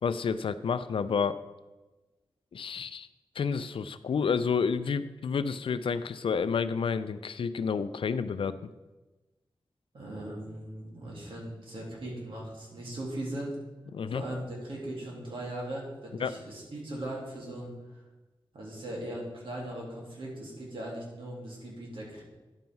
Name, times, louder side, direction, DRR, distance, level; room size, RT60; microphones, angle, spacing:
voice 1, 0.0-1.4 2.5-3.1 3.4-8.6 13.9-14.2 16.2-16.4, left 6 dB, 80° left, 13 dB, 0.4 m, -30 dB
voice 2, 9.9-13.6 14.1-18.0 18.5-22.2, right 1 dB, 75° right, -3 dB, 2.8 m, -39 dB
10.5 x 5.4 x 4.6 m, 1.1 s
wide cardioid pair, 80°, 9 cm